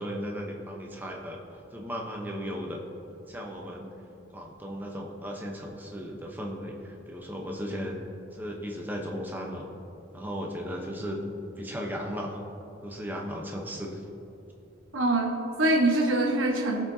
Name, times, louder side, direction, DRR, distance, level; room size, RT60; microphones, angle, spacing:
voice 1, 0.0-1.4 1.7-2.8 3.3-3.9 4.3-8.0 8.3-9.6 10.1-11.2 11.6-12.4 12.8-14.0, equal, 10° right, 0 dB, 0.8 m, -36 dB
voice 2, 14.9-16.8, right 2 dB, 75° right, 1 dB, 1.2 m, -24 dB
18.0 x 6.1 x 2.8 m, 2.9 s
head